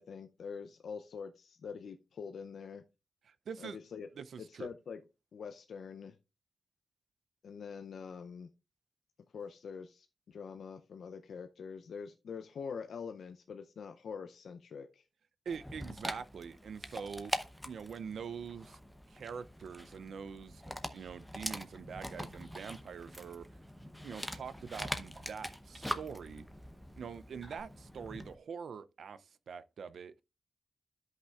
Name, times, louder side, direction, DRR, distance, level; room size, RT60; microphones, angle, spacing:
voice 1, 0.0-2.8 3.6-4.1 4.5-5.0 5.3-6.2 7.4-8.5 9.3-15.1, left 6 dB, 80° left, 0.5 m, -45 dB
voice 2, 3.3-3.8 4.2-4.7 15.5-17.3 17.6-18.8 19.1-23.5 24.0-26.5 27.0-30.1, right 6 dB, 75° right, 0.5 m, -44 dB
Dog, 15.5-28.3, equal, ahead, 0.7 m, -43 dB
sound 1, 22.3-27.6, right 2 dB, 30° right, 2.8 m, -63 dB
13.0 x 5.5 x 2.4 m
wide cardioid pair, 145°, 0 cm